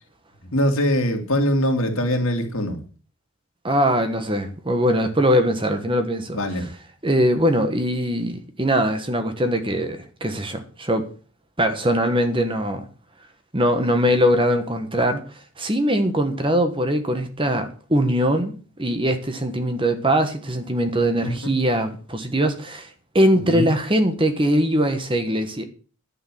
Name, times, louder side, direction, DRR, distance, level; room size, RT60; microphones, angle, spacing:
voice 1, 0.5-2.8 6.3-6.7 21.2-21.5 23.3-23.7, equal, 65° left, 2.5 m, -22 dB
voice 2, 3.6-6.4 7.0-11.1 11.6-12.9 13.5-15.3 15.6-22.9 23.1-25.6, equal, 20° right, 1.3 m, -21 dB
10.5 x 6.6 x 7.5 m
head